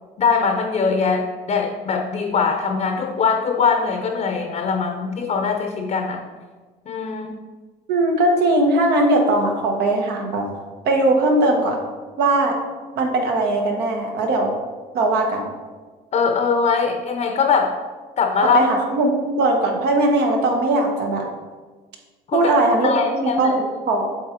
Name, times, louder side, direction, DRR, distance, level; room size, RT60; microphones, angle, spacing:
voice 1, 0.2-6.2 6.9-7.4 16.1-17.8 18.2-18.6 22.3-22.5 22.8-23.5, left 5 dB, 45° left, 4 dB, 0.6 m, -21 dB
voice 2, 7.9-10.5 10.8-11.8 12.2-12.6 13.0-14.5 14.9-15.5 18.5-21.3 22.3-24.1, right 2 dB, 75° right, 2 dB, 1.3 m, -19 dB
7.5 x 3.8 x 4.5 m, 1.4 s
cardioid pair, 110°, 17 cm